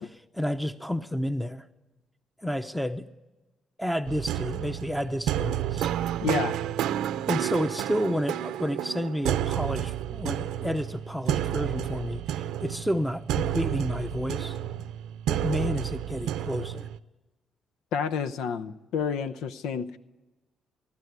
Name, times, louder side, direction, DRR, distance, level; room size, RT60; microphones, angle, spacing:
voice 1, 0.0-1.6 2.4-3.1 3.8-5.9 7.3-14.6 15.3-16.9, equal, ahead, 0.7 m, -30 dB
sound 1, 4.1-17.0, right 11 dB, 90° right, 0.7 m, -30 dB
voice 2, 6.2-6.6 17.9-20.0, left 6 dB, 90° left, 0.7 m, -29 dB
23.5 x 12.0 x 9.4 m
cardioid pair, 90°, 0 cm